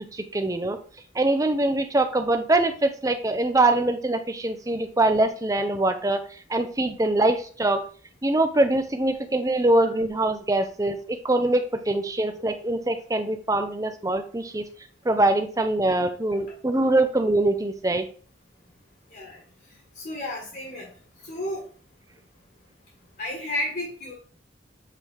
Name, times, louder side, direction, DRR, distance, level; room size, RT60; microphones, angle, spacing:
voice 1, 0.1-0.8 1.1-6.2 6.5-7.8 8.2-14.6 15.0-18.0, right 2 dB, 20° right, 7 dB, 0.7 m, -23 dB
voice 2, 20.0-20.9 21.2-21.6 23.2-24.1, left 1 dB, 55° left, -2 dB, 1.9 m, -32 dB
7.8 x 3.4 x 4.6 m, 0.42 s
head